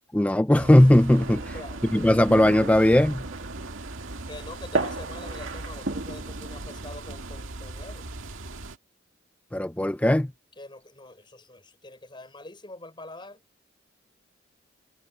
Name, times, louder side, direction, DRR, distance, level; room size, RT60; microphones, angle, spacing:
voice 1, 0.1-1.4 1.9-3.2 9.5-10.3, left 1 dB, 5° left, 0.4 m, -18 dB
sound 1, 0.5-8.8, right 2 dB, 80° right, 1.9 m, -39 dB
sound 2, 1.1-7.4, right 2 dB, 65° right, 1.7 m, -35 dB
voice 2, 1.3-1.8 4.3-8.0 10.6-13.4, left 2 dB, 25° left, 6.1 m, -44 dB
head